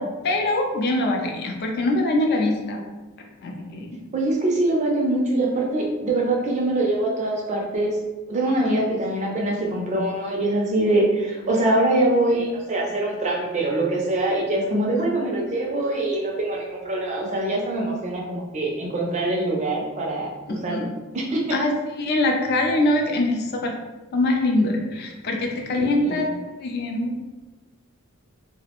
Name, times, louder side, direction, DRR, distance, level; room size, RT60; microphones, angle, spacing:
voice 1, 0.0-2.8 3.4-4.0 8.7-8.8 20.5-20.9 21.5-21.7 22.0-23.7 24.1-26.2 26.6-27.2, left 2 dB, 45° left, 2 dB, 0.3 m, -23 dB
voice 2, 4.1-8.0 8.3-20.9 21.1-21.4 25.8-26.2, right 2 dB, 30° right, -1 dB, 0.4 m, -23 dB
2.4 x 2.0 x 2.8 m, 1.2 s
head